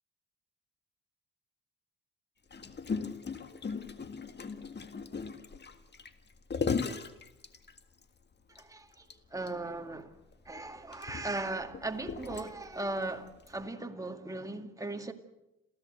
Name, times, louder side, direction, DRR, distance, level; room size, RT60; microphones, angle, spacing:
Gurgling, 2.5-8.0 8.6-8.7 8.9-9.1 9.5-9.6 10.3-12.8 13.5-13.6, left 5 dB, 35° left, 1.8 m, -37 dB
voice 1, 8.6-10.2 10.5-15.1, right 2 dB, 10° right, 2.3 m, -38 dB
28.0 x 16.0 x 7.8 m
cardioid pair, 90°, 30 cm